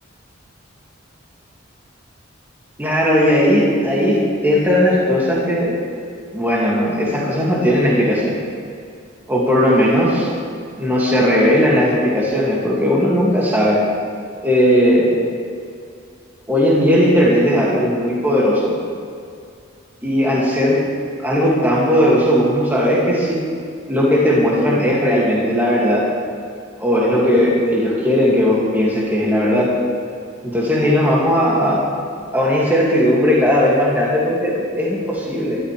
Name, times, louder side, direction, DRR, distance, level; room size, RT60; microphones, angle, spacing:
voice 1, 2.8-5.7 6.3-8.4 9.3-10.3 10.8-13.8 14.4-15.1 16.5-18.7 20.0-20.8 21.2-23.4 23.9-26.1 26.8-29.8 30.4-31.9 32.3-35.6, equal, 10° right, -6 dB, 2.3 m, -17 dB
22.0 x 13.0 x 3.4 m, 2.3 s
head